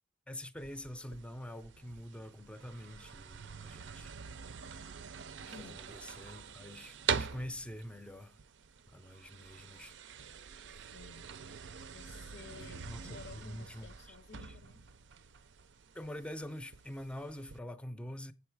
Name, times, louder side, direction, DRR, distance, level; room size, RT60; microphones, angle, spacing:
voice 1, 0.3-4.1 5.3-8.4 8.9-9.9 12.6-14.2 14.4-14.6 15.9-18.3, left 1 dB, 5° left, 0.5 m, -45 dB
sound 1, 0.6-17.6, right 7 dB, 80° right, 0.5 m, -44 dB
voice 2, 5.5-5.8 10.9-11.3 11.9-14.8, left 5 dB, 75° left, 0.7 m, -53 dB
7.8 x 7.1 x 4.7 m
head